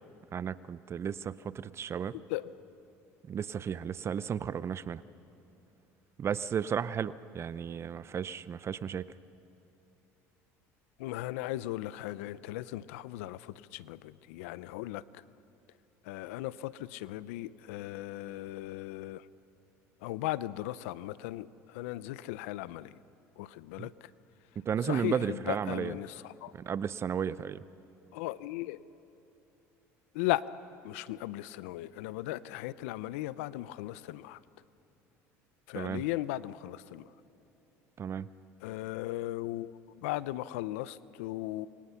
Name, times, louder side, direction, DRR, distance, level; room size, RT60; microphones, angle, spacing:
voice 1, 0.3-2.1 3.3-5.0 6.2-9.1 23.8-23.9 24.6-25.9 26.5-27.6 35.7-36.0 38.0-38.3, right 7 dB, 40° right, 17 dB, 0.6 m, -34 dB
voice 2, 11.0-15.0 16.0-19.2 20.0-23.0 23.4-24.1 24.8-26.5 28.1-28.8 30.1-30.5 30.8-34.4 35.7-37.0 38.6-39.7 40.0-41.7, left 16 dB, 85° left, 17 dB, 0.6 m, -37 dB
28.0 x 24.0 x 5.8 m, 3.0 s
supercardioid pair, 90°, 7 cm